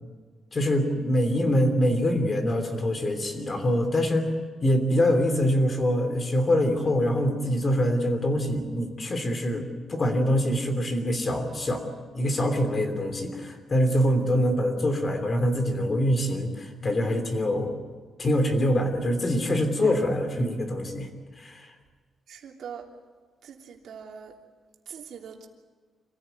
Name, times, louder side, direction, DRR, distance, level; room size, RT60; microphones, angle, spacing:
voice 1, 0.5-4.3 4.6-11.8 12.1-17.7 18.2-21.1 21.4-21.7, equal, 30° left, 6 dB, 3.2 m, -24 dB
voice 2, 22.3-22.8 23.4-24.3 24.9-25.5, right 7 dB, 70° right, 1 dB, 3.1 m, -42 dB
27.0 x 15.5 x 9.5 m, 1.5 s
wide cardioid pair, 150°, 0 cm